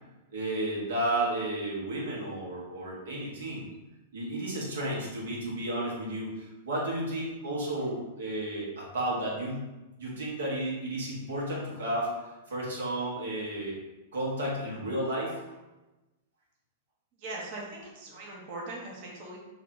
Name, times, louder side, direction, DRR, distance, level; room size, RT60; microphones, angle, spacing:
voice 1, 0.3-3.7 4.1-9.6 10.0-12.1 12.5-13.8 14.1-15.6, right 1 dB, 75° right, -4 dB, 1.2 m, -32 dB
voice 2, 17.2-19.4, right 2 dB, 50° right, -3 dB, 0.9 m, -40 dB
3.2 x 2.5 x 3.8 m, 1.1 s
hypercardioid pair, 105°, 0 cm